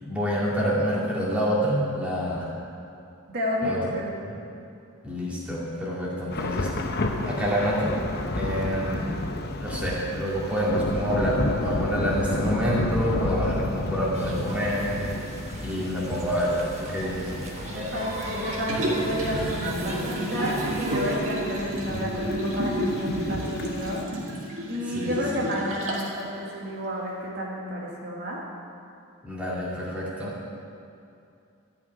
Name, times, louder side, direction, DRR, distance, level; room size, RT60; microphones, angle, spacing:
voice 1, 0.0-2.6 3.6-3.8 4.2-4.4 5.0-7.0 7.2-7.9 8.3-9.1 9.6-15.0 15.6-17.3 24.8-25.4 29.2-30.3, equal, 5° right, -7 dB, 2.4 m, -27 dB
voice 2, 3.3-4.1 17.7-24.0 24.7-28.4, equal, 45° right, -4 dB, 1.7 m, -31 dB
Thunder / Rain, 6.3-24.0, left 2 dB, 45° left, 0.7 m, -32 dB
sound 1, 14.1-21.2, right 1 dB, 30° right, 1.3 m, -37 dB
Liquid, 18.5-26.2 26.6-26.7, right 1 dB, 60° right, 2.1 m, -31 dB
14.5 x 5.8 x 9.4 m, 2.6 s
head